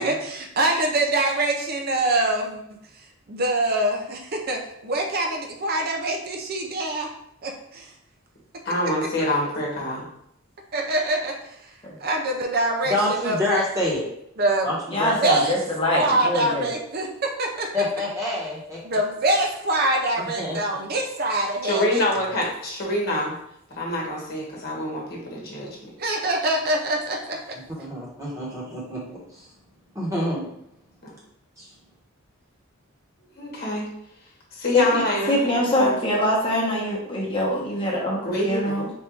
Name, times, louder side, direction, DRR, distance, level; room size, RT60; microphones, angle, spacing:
voice 1, 0.0-2.6 3.3-7.1 7.4-7.9 8.8-8.9 10.7-11.7 12.0-13.7 14.4-14.8 15.2-15.6 15.9-17.7 18.8-22.0 26.0-27.6, right 1 dB, 45° right, 2 dB, 0.5 m, -24 dB
voice 2, 8.6-10.0 21.6-23.3 23.7-25.7 31.0-31.1 33.3-33.9 34.5-35.4 35.8-35.9 38.2-38.8, left 1 dB, 45° left, -3 dB, 1.2 m, -26 dB
voice 3, 12.9-14.1 14.6-15.4 17.7-18.8 20.4-20.6 27.5-29.5 29.9-30.5 31.6-31.7, left 1 dB, 15° right, -5 dB, 1.2 m, -27 dB
voice 4, 14.9-16.7 34.7-38.9, left 1 dB, 25° left, -3 dB, 1.0 m, -24 dB
3.5 x 2.6 x 4.5 m, 0.75 s
head